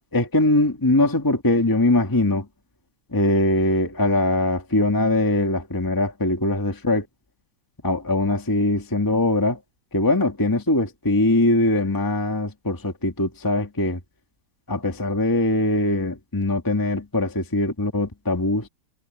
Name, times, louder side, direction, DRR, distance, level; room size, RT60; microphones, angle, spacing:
voice 1, 0.1-2.5 3.1-7.1 7.8-9.6 9.9-14.0 14.7-18.7, left 2 dB, 10° left, 1.6 m, -21 dB
omnidirectional pair, 2.0 m